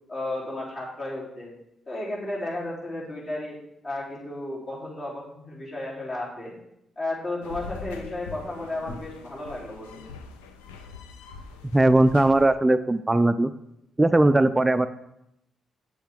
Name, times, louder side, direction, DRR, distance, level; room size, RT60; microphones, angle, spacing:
voice 1, 0.1-1.5 1.9-3.6 3.8-6.5 7.0-10.1, left 2 dB, 45° left, -5 dB, 3.4 m, -33 dB
sound 1, 7.4-12.5, left 4 dB, 85° left, 0.5 m, -42 dB
voice 2, 11.7-13.5 14.0-14.9, right 2 dB, 20° right, 12 dB, 0.3 m, -19 dB
7.5 x 7.2 x 3.6 m, 0.82 s
hypercardioid pair, 40°, 0 cm